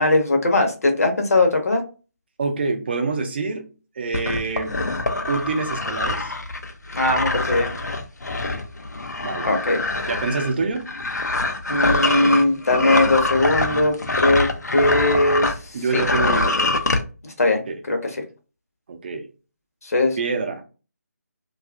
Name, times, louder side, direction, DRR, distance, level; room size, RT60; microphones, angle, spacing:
voice 1, 0.0-1.8 7.0-7.7 9.4-9.8 11.7-14.5 14.7-15.5 15.9-16.0 17.2-17.6 17.9-18.2 19.8-20.2, left 2 dB, 60° left, 0.9 m, -19 dB
voice 2, 2.4-3.6 4.0-4.7 5.3-6.3 9.2-9.5 10.1-10.9 15.7-16.6 17.7-17.8 18.9-19.3 20.2-20.6, right 4 dB, 35° right, 0.5 m, -26 dB
sound 1, 4.1-15.6 15.9-17.0, left 2 dB, 80° left, 0.5 m, -24 dB
2.7 x 2.4 x 2.3 m
figure-of-eight pair, 155°, 9 cm